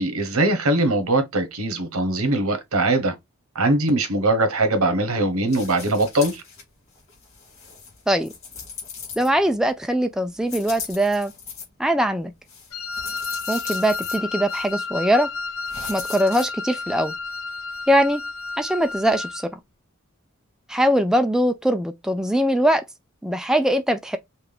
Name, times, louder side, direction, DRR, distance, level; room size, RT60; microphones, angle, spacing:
voice 1, 0.0-3.1 3.5-6.4, right 2 dB, 85° right, 1.2 m, -21 dB
sound 1, 5.5-6.6 7.0-9.6 10.4-11.6 12.5-14.2 14.5-14.7 15.7-16.5, left 6 dB, 30° left, 2.6 m, -38 dB
voice 2, 9.2-11.3 11.8-12.3 13.5-15.3 15.9-17.1 17.9-18.2 18.6-19.5 20.7-22.8 23.2-24.2, equal, 5° right, 0.3 m, -21 dB
Wind instrument woodwind instrument, 12.7-19.4, left 4 dB, 85° left, 0.7 m, -31 dB
5.6 x 2.5 x 3.4 m
head